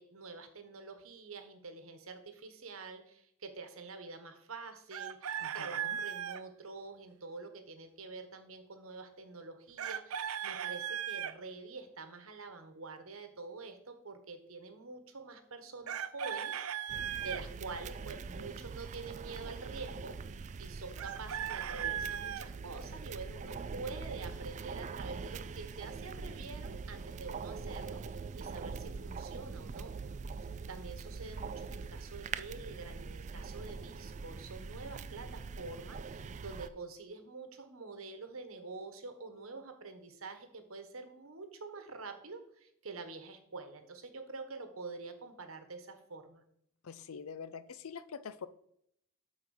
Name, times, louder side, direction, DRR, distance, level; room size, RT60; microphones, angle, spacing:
voice 1, 0.0-29.9 30.4-46.4, right 3 dB, 70° right, 7 dB, 1.3 m, -47 dB
Chicken rooster, 4.9-6.4 9.8-11.3 15.9-17.4 21.0-22.5, right 9 dB, 90° right, 0.5 m, -37 dB
voice 2, 5.4-6.0 46.8-48.5, left 6 dB, 80° left, 15 dB, 0.5 m, -45 dB
sound 1, 16.9-36.7, right 5 dB, 35° right, 0.3 m, -43 dB
8.2 x 4.4 x 6.4 m, 0.71 s
head